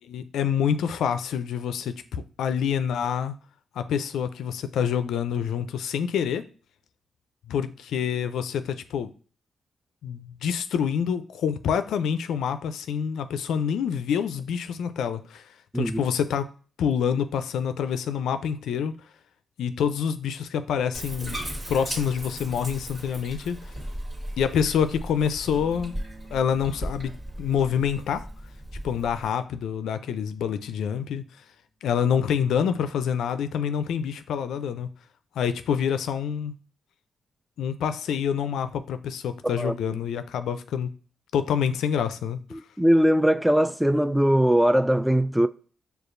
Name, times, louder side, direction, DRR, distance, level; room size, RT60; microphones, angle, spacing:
voice 1, 0.1-3.3 3.8-6.4 7.5-9.1 10.0-15.4 15.7-16.5 16.8-18.9 19.6-21.4 21.7-23.6 24.4-25.9 26.3-27.1 27.4-28.3 28.8-31.2 31.8-34.9 35.4-36.5 37.6-40.9 41.3-42.6, left 8 dB, 80° left, 0.4 m, -27 dB
Bathtub (filling or washing), 20.9-29.3, right 1 dB, 40° right, 1.8 m, -37 dB
sound 1, 25.5-35.4, right 2 dB, 55° right, 1.3 m, -57 dB
voice 2, 39.4-40.0 42.5-45.5, equal, 5° right, 0.4 m, -21 dB
6.6 x 2.3 x 2.5 m
supercardioid pair, 50°, 0 cm